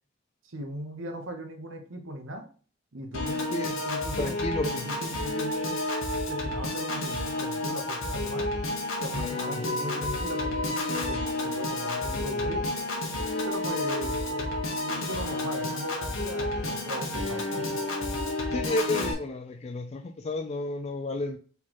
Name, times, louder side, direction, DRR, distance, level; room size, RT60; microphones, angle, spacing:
voice 1, 0.4-2.5 2.9-5.8 6.3-8.5 9.0-12.7 13.4-17.8, equal, 75° right, 4 dB, 1.0 m, -38 dB
Piano / Organ, 3.1-19.1, left 2 dB, 85° left, 1.4 m, -30 dB
voice 2, 4.2-4.9 9.5-9.6 18.5-21.4, left 2 dB, 30° left, 5 dB, 0.3 m, -31 dB
4.2 x 4.0 x 3.0 m, 0.40 s
head